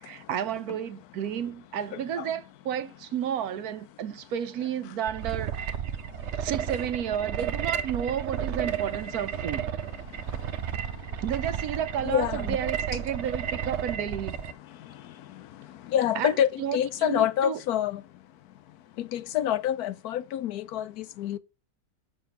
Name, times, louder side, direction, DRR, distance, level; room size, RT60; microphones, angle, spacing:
voice 1, 0.0-5.8 6.4-9.6 11.2-14.3 16.1-17.6, right 9 dB, 80° right, 1.3 m, -32 dB
sound 1, 5.1-14.5, right 9 dB, 60° right, 0.9 m, -32 dB
voice 2, 12.0-12.6 15.9-18.0 19.0-21.4, left 10 dB, 85° left, 1.2 m, -27 dB
7.0 x 5.8 x 5.7 m
omnidirectional pair, 1.6 m